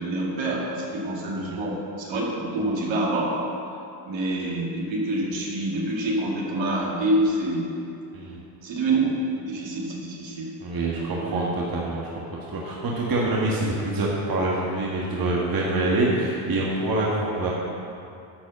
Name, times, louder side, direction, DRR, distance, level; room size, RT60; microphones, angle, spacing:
voice 1, 0.0-3.4 4.1-7.8 8.6-9.0 9.4-10.5 10.9-11.5, right 1 dB, 65° right, -3 dB, 2.1 m, -27 dB
voice 2, 10.6-12.1 12.5-17.5, right 2 dB, 45° right, -4 dB, 1.6 m, -25 dB
10.5 x 4.3 x 6.8 m, 2.6 s
supercardioid pair, 75°, 49 cm